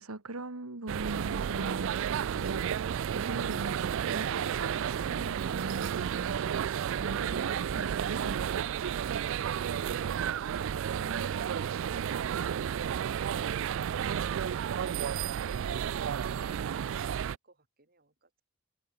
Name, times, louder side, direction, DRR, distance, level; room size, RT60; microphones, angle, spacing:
voice 1, 0.0-8.5 11.0-11.6, right 2 dB, 85° right, 1.8 m, -41 dB
sound 1, 0.9-17.4, right 8 dB, 60° right, 0.3 m, -32 dB
voice 2, 16.4-18.4, right 2 dB, 45° right, 4.8 m, -61 dB
head